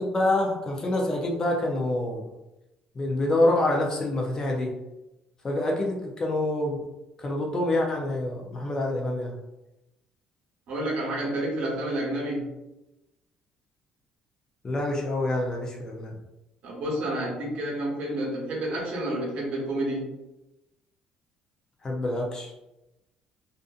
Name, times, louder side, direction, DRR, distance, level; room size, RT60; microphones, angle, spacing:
voice 1, 0.0-2.3 3.0-4.7 5.4-6.8 7.2-9.3 14.6-16.2 21.8-22.5, left 1 dB, 25° left, 0 dB, 0.4 m, -26 dB
voice 2, 10.7-12.5 16.6-20.2, right 1 dB, 60° right, -3 dB, 1.0 m, -29 dB
2.5 x 2.5 x 2.4 m, 0.96 s
cardioid pair, 130°, 2 cm